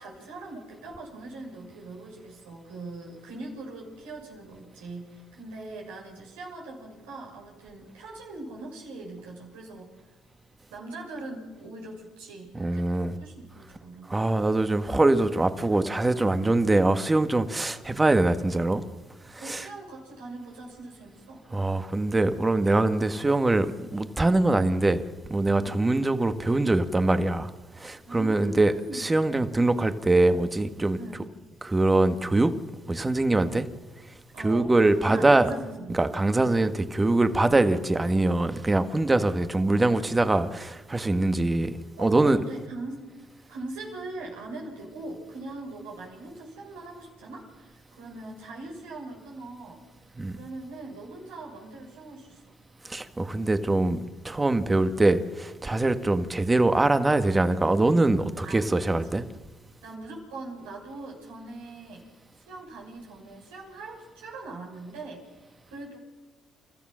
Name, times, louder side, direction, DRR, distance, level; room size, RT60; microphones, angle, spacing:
voice 1, 0.0-10.1 10.7-12.9 13.2-14.2 19.4-21.4 25.6-25.8 28.0-29.1 30.9-31.2 34.3-36.0 42.0-43.0 43.5-49.8 50.3-52.4 58.4-59.2 59.8-62.1 62.4-66.0, right 2 dB, 90° right, 6.8 m, -41 dB
voice 2, 12.5-13.1 14.1-18.8 19.3-19.7 21.5-25.0 25.3-31.0 31.6-32.5 32.9-33.7 34.4-35.5 35.9-42.4 50.1-50.4 52.8-59.3, right 2 dB, 20° right, 1.6 m, -23 dB
30.0 x 14.0 x 6.4 m
hypercardioid pair, 55°, 0 cm